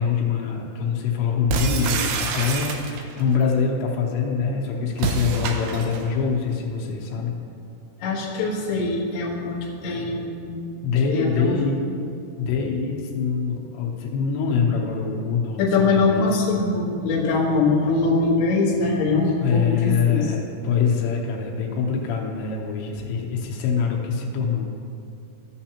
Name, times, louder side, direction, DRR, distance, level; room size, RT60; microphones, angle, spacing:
voice 1, 0.0-7.3 10.8-11.8 12.4-16.3 19.4-24.7, left 6 dB, 80° left, 0 dB, 3.1 m, -24 dB
sound 1, 1.5-3.2 4.9-6.1, right 4 dB, 80° right, 2.3 m, -26 dB
voice 2, 8.0-10.5 11.1-11.7 15.6-20.3, left 3 dB, 65° left, -4 dB, 2.5 m, -22 dB
14.0 x 6.9 x 2.9 m, 2.5 s
omnidirectional pair, 5.0 m